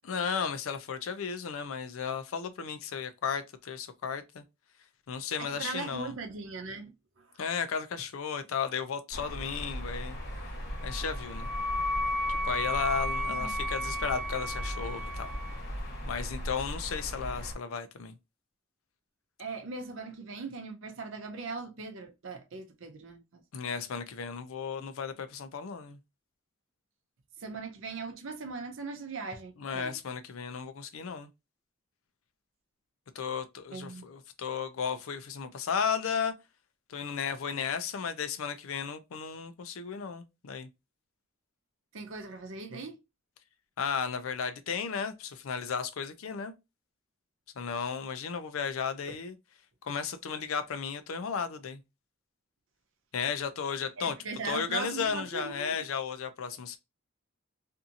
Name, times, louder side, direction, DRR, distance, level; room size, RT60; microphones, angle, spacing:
voice 1, 0.0-4.4 5.1-6.1 7.4-10.2 10.8-11.5 12.3-15.3 16.1-18.1 23.5-26.0 29.6-31.3 33.2-36.3 36.9-40.7 43.8-46.5 47.6-49.4 49.8-51.8 53.1-54.2 54.4-56.8, left 6 dB, 75° left, 0.4 m, -34 dB
voice 2, 5.4-7.4 13.3-13.6 19.4-23.4 27.4-30.0 33.7-34.1 41.9-43.0 54.0-55.9, right 4 dB, 65° right, 0.6 m, -40 dB
sound 1, 9.1-17.5, equal, 50° left, 1.2 m, -38 dB
Wind instrument woodwind instrument, 10.8-15.6, left 1 dB, 15° right, 0.7 m, -34 dB
2.6 x 2.5 x 2.6 m
head